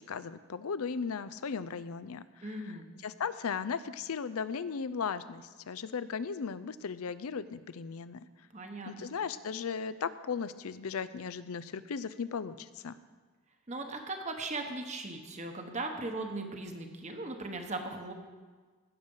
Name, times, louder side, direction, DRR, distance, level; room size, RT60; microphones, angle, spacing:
voice 1, 0.0-2.4 3.0-8.3 8.9-13.0, left 6 dB, 75° left, 15 dB, 0.5 m, -36 dB
voice 2, 2.4-2.9 8.5-9.1 13.7-18.1, right 2 dB, 30° right, 4 dB, 1.0 m, -38 dB
16.0 x 6.6 x 5.5 m, 1.5 s
head